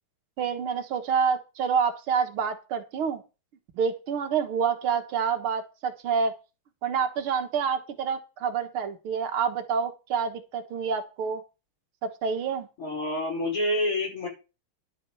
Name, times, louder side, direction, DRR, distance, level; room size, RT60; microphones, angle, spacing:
voice 1, 0.4-3.2 3.8-6.3 6.8-11.4 12.0-12.7, right 6 dB, 80° right, 6 dB, 2.3 m, -27 dB
voice 2, 12.8-14.3, left 1 dB, 80° left, -1 dB, 6.2 m, -27 dB
11.5 x 5.5 x 6.9 m, 0.30 s
omnidirectional pair, 2.4 m